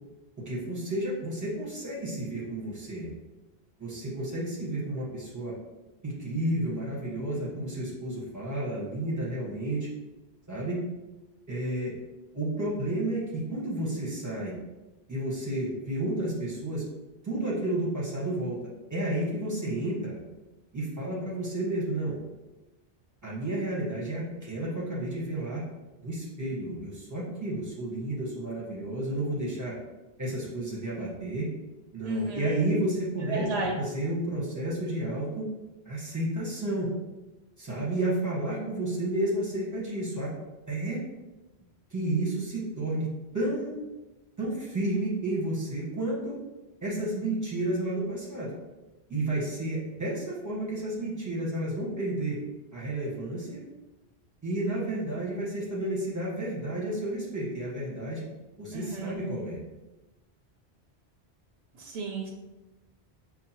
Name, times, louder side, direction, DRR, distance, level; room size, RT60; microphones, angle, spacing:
voice 1, 0.4-3.1 3.8-5.5 6.0-9.9 10.5-10.8 11.5-11.9 12.3-14.6 15.1-16.8 17.2-18.6 18.9-20.2 20.7-22.2 23.2-25.6 26.0-29.7 30.2-31.5 31.9-35.5 35.8-36.9 37.6-40.3 40.7-41.0 41.9-43.1 43.3-43.7 44.4-46.4 46.8-48.5 49.1-52.4 52.7-53.6 54.4-58.3 58.6-59.6, right 1 dB, 15° right, -6 dB, 1.1 m, -31 dB
voice 2, 32.0-32.7 33.3-33.7 58.7-59.2 61.7-62.3, right 3 dB, 80° right, 0 dB, 0.9 m, -33 dB
5.6 x 2.3 x 2.9 m, 1.1 s
omnidirectional pair, 1.1 m